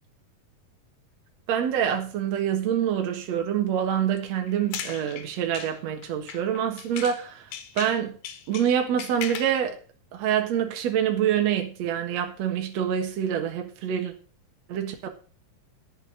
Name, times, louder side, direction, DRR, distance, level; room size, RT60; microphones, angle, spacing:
voice 1, 1.5-7.5 7.8-8.2 8.5-9.8 10.1-14.1 14.7-15.1, right 9 dB, 55° right, 2.4 m, -26 dB
sound 1, 4.5-7.2 7.5-9.6, left 9 dB, 80° left, 2.9 m, -38 dB
11.0 x 6.8 x 6.7 m
omnidirectional pair, 3.9 m